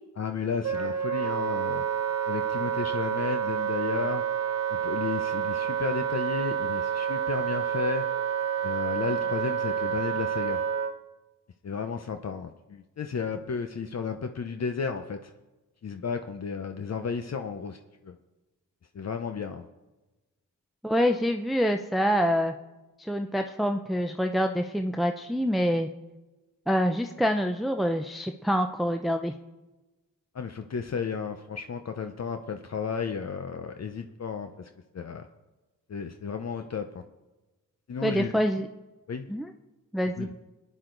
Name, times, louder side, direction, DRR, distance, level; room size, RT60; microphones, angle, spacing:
voice 1, 0.2-1.8 2.3-4.2 4.7-8.0 8.6-10.6 11.6-15.3 15.8-18.1 18.9-19.7 30.3-35.3 35.9-37.0 37.9-38.4 39.1-39.3 40.2-40.3, left 5 dB, 55° left, 6 dB, 0.8 m, -33 dB
Wind instrument woodwind instrument, 0.6-10.9, right 8 dB, 50° right, 1.2 m, -29 dB
voice 2, 20.8-22.5 23.0-25.9 26.7-29.3 38.0-38.7 39.3-39.5 39.9-40.3, equal, ahead, 5 dB, 0.6 m, -26 dB
22.5 x 10.0 x 3.9 m, 1.1 s
cardioid pair, 70°, 32 cm